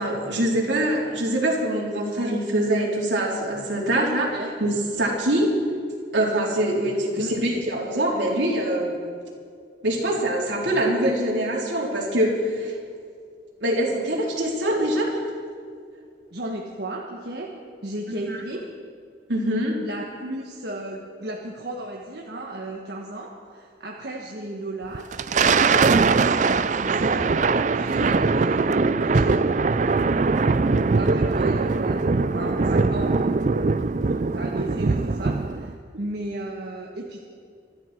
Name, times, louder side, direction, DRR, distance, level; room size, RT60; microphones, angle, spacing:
voice 1, 0.0-4.3 4.6-5.5 6.1-8.9 9.8-12.7 13.6-15.2 18.3-18.4 19.3-19.8, right 1 dB, 80° right, -3 dB, 4.0 m, -24 dB
voice 2, 16.3-18.8 19.8-25.2 26.2-29.4 30.9-33.4 34.4-37.2, right 1 dB, 60° right, -1 dB, 1.4 m, -34 dB
Thunder, 24.9-35.7, right 4 dB, 40° right, 0.4 m, -21 dB
25.5 x 12.0 x 4.5 m, 2.2 s
head